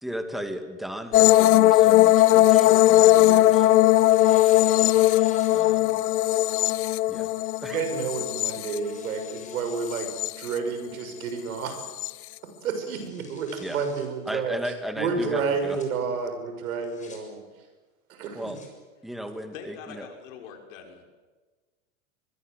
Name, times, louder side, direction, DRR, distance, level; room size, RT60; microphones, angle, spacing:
voice 1, 0.0-3.7 5.5-6.0 7.1-7.3 7.6-7.8 13.6-13.8 14.3-15.8 18.4-18.6 19.0-20.1, equal, ahead, 7 dB, 2.4 m, -35 dB
sound 1, 1.1-9.3 9.7-10.5 11.8-12.1, left 15 dB, 85° left, 0.7 m, -19 dB
Tearing, 4.0-6.0 6.4-6.5 7.5-7.8 8.3-10.1 10.5-10.6 11.1-11.6 11.9-12.0 12.3-12.4 12.8-14.1 15.4-15.8 16.6-17.2 18.2-18.7, left 4 dB, 15° left, 6.8 m, -51 dB
voice 2, 7.6-11.8 12.6-17.4 18.1-18.5, right 5 dB, 75° right, 6 dB, 6.7 m, -30 dB
voice 3, 19.5-21.0, left 7 dB, 65° left, 3 dB, 6.1 m, -43 dB
24.0 x 22.0 x 8.2 m, 1.3 s
hypercardioid pair, 120°, 42 cm